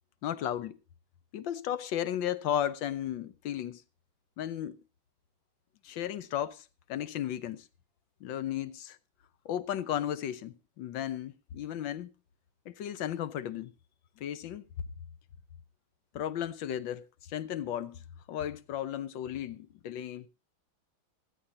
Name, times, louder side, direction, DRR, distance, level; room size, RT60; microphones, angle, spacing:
voice 1, 0.2-0.8 1.3-3.8 4.4-4.8 5.8-7.6 8.2-9.0 9.4-12.1 12.7-13.7 14.2-14.6 16.1-18.0 18.3-20.3, left 10 dB, 70° left, 1.5 m, -34 dB
19.0 x 14.5 x 2.7 m
omnidirectional pair, 2.2 m